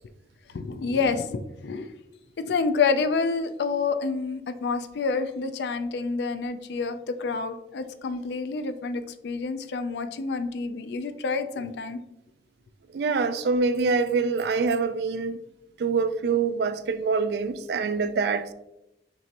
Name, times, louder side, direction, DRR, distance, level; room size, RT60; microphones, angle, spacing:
voice 1, 0.5-1.9 2.4-12.0, left 4 dB, 70° left, 0.4 m, -28 dB
voice 2, 12.9-15.4 15.8-18.5, right 4 dB, 65° right, 0.3 m, -25 dB
6.0 x 2.8 x 2.5 m
head